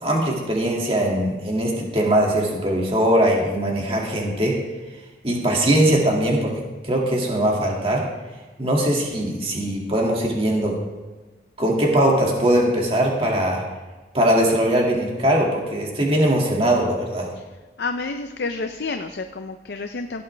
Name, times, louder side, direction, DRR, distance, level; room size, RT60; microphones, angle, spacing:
voice 1, 0.0-4.5 5.2-8.0 8.6-10.8 11.6-13.6 14.1-17.3, right 1 dB, 30° right, -2 dB, 2.2 m, -21 dB
voice 2, 17.8-20.2, left 3 dB, 65° left, 6 dB, 0.6 m, -29 dB
16.5 x 8.1 x 3.4 m, 1.3 s
head